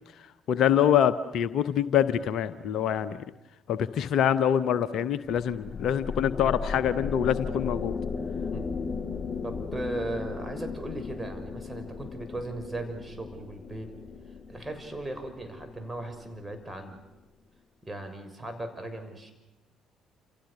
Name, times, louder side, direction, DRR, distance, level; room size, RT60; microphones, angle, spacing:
voice 1, 0.5-3.2 3.7-7.9, left 9 dB, 60° left, 13 dB, 0.9 m, -25 dB
sound 1, 5.4-16.7, left 5 dB, 40° left, 7.0 m, -36 dB
voice 2, 9.4-13.9 14.5-17.0 17.9-19.3, right 2 dB, 15° right, 6 dB, 6.5 m, -37 dB
29.5 x 28.5 x 6.8 m, 1.0 s
figure-of-eight pair, 45°, 0 cm